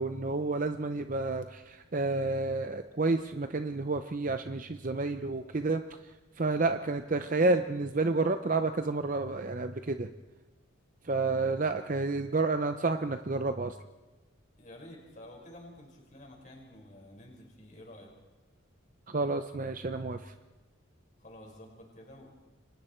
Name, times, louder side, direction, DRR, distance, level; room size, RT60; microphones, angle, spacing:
voice 1, 0.0-5.8 6.4-10.1 11.0-13.8 19.1-20.3, right 3 dB, 40° right, 8 dB, 0.7 m, -30 dB
voice 2, 14.6-18.1 21.2-22.3, left 1 dB, 35° left, 0 dB, 5.2 m, -50 dB
29.0 x 24.5 x 4.5 m, 1.2 s
head